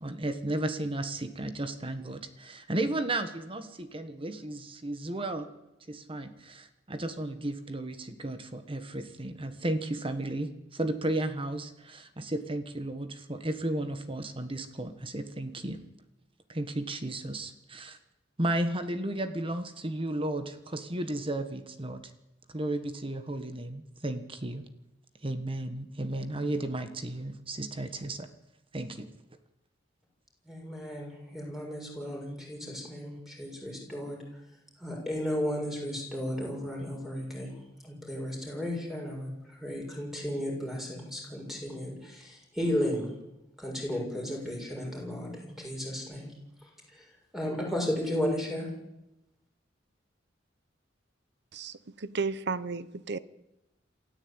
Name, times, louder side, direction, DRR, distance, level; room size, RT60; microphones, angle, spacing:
voice 1, 0.0-5.5 5.9-15.8 16.5-18.0 18.4-22.0 22.5-24.6 25.2-28.3 28.7-29.1, right 1 dB, 30° right, 1.4 m, -34 dB
voice 2, 30.4-34.4 34.8-43.1 43.6-46.3 46.6-48.7, left 1 dB, ahead, 6.8 m, -34 dB
voice 3, 51.5-53.2, right 4 dB, 65° right, 0.9 m, -33 dB
27.5 x 14.5 x 8.8 m
head